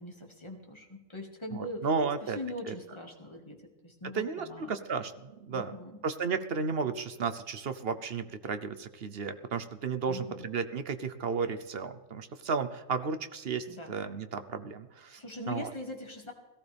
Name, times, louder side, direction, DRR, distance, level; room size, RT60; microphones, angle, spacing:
voice 1, 0.0-4.7 5.5-6.0 10.1-10.5 13.7-13.9 15.2-16.3, left 1 dB, 20° left, 2 dB, 2.0 m, -42 dB
voice 2, 1.5-2.4 2.7-2.8 4.1-5.8 6.0-15.2 15.5-15.7, right 5 dB, 50° right, 10 dB, 1.0 m, -33 dB
17.5 x 15.0 x 3.5 m, 1.1 s
omnidirectional pair, 1.4 m